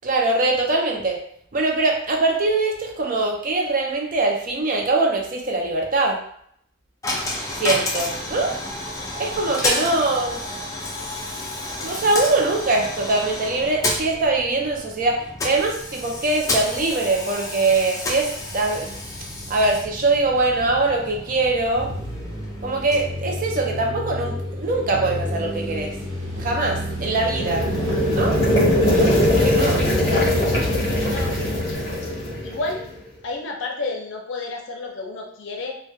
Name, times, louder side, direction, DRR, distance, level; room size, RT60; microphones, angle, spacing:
voice 1, 0.0-1.2 1.5-6.2 7.5-8.5 9.2-10.4 11.8-15.2 15.4-19.0 19.5-21.9 22.6-25.9 26.4-27.7 28.1-28.4 28.9-29.8, right 2 dB, 45° right, 1 dB, 0.4 m, -22 dB
Coin (dropping), 7.0-24.0, left 2 dB, 15° left, 0.3 m, -31 dB
voice 2, 9.8-10.1 28.8-29.1 29.5-30.3 31.1-31.3 31.8-31.9 32.4-32.8 33.2-35.8, left 3 dB, 70° left, 1 dB, 0.5 m, -31 dB
sound 1, 18.2-32.5, equal, 80° right, 0.7 m, -31 dB
sound 2, 26.9-32.9, left 1 dB, 35° left, 0.7 m, -21 dB
2.2 x 2.1 x 2.6 m, 0.66 s
head